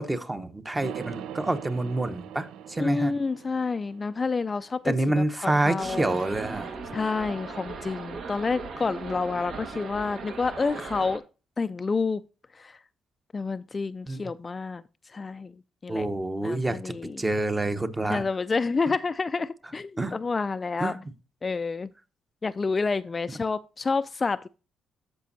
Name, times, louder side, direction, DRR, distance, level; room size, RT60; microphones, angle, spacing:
voice 1, 0.0-3.1 4.8-6.7 14.1-14.2 15.9-18.2 20.0-20.2 20.8-21.0, right 2 dB, 15° right, 0.9 m, -27 dB
sound 1, 0.8-4.9, right 9 dB, 85° right, 0.5 m, -42 dB
voice 2, 2.8-6.1 6.9-11.2 11.6-12.2 12.5-12.8 13.3-14.8 15.1-15.6 15.8-16.1 16.4-17.2 18.1-20.9 21.4-21.9 22.4-24.5, left 4 dB, 30° left, 0.3 m, -29 dB
sound 2, 5.8-11.2, right 4 dB, 65° right, 1.4 m, -38 dB
13.0 x 5.2 x 2.7 m
cardioid pair, 90°, 0 cm